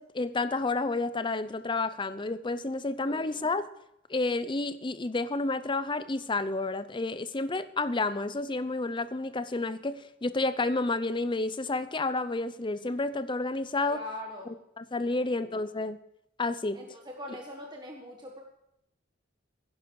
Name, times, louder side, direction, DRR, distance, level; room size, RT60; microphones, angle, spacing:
voice 1, 0.0-3.7 4.1-14.0 14.8-16.0 16.4-16.8, left 3 dB, 25° left, 14 dB, 0.6 m, -30 dB
voice 2, 13.9-14.5 15.1-15.6 16.7-18.4, left 1 dB, 25° right, 0 dB, 1.5 m, -42 dB
17.5 x 10.5 x 4.8 m, 0.81 s
head